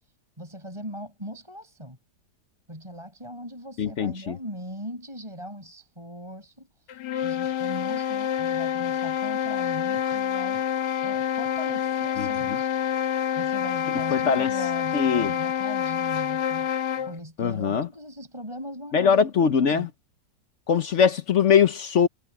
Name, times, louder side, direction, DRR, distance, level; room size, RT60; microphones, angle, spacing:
voice 1, 0.4-2.0 2.7-6.7 7.2-10.7 11.0-12.7 13.4-19.1 19.7-19.9 21.0-21.1, equal, 15° right, 6.3 m, -40 dB
voice 2, 3.8-4.4 12.2-12.6 14.1-14.5 14.9-15.3 17.4-17.9 18.9-19.9 20.7-22.1, left 7 dB, 55° left, 0.9 m, -22 dB
sound 1, 6.9-17.2, left 9 dB, 70° left, 1.6 m, -27 dB
omnidirectional pair, 1.9 m